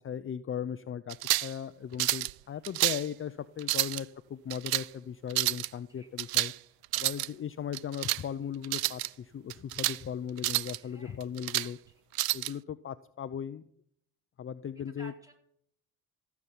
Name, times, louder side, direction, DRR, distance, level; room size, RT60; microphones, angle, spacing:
voice 1, 0.0-6.5 6.9-11.8 12.3-13.6 14.4-15.1, left 8 dB, 35° left, 13 dB, 0.6 m, -38 dB
sound 1, 1.1-1.5 2.0-2.3 2.6-3.1 3.6-4.0 4.5-4.9 5.3-5.7 6.2-6.6 6.8-7.3 7.7-8.2 8.6-9.1 9.5-10.0 10.4-10.8 11.2-11.7 12.2-12.5, right 18 dB, 75° right, 0.5 m, -29 dB
voice 2, 6.9-7.2 10.8-11.2 11.6-11.7 15.0-15.3, right 2 dB, 10° right, 2 dB, 4.4 m, -55 dB
16.0 x 7.2 x 9.6 m, 0.72 s
supercardioid pair, 75°, 37 cm